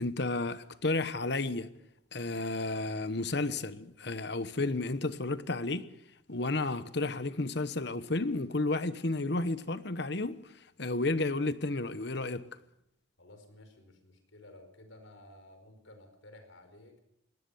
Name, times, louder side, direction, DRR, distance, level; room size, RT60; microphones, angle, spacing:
voice 1, 0.0-1.7 2.1-5.9 6.3-10.5 10.8-12.5, left 2 dB, 55° left, 1.1 m, -32 dB
voice 2, 13.2-17.0, left 1 dB, 75° left, 5.1 m, -54 dB
22.0 x 18.5 x 7.0 m
head